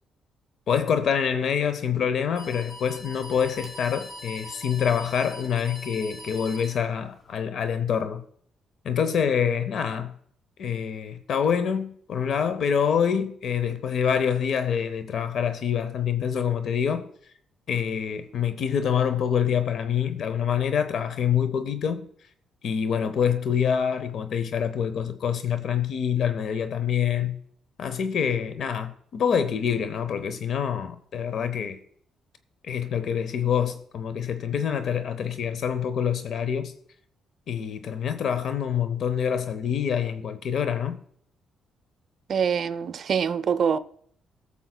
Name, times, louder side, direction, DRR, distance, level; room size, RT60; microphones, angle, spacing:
voice 1, 0.7-8.2 8.8-10.1 10.6-17.1 17.7-22.1 22.6-27.4 27.8-31.8 32.6-36.7 37.5-41.0, left 7 dB, 65° left, 0.6 m, -26 dB
sound 1, 2.3-7.3, left 1 dB, 20° left, 2.7 m, -42 dB
voice 2, 42.3-43.8, right 7 dB, 55° right, 0.5 m, -24 dB
20.5 x 7.0 x 2.2 m
cardioid pair, 90°, 0 cm